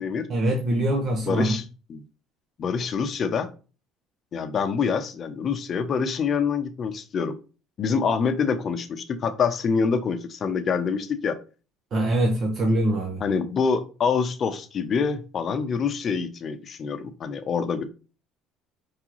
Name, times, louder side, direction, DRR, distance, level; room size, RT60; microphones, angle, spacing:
voice 1, 0.3-1.5 11.9-13.2, right 1 dB, 40° right, 1 dB, 0.9 m, -23 dB
voice 2, 1.2-1.6 1.9-2.0 2.6-3.5 4.3-7.3 7.8-11.4 13.2-17.9, left 5 dB, 40° left, 8 dB, 0.7 m, -26 dB
4.8 x 3.7 x 3.0 m, 0.33 s
cardioid pair, 120°, 0 cm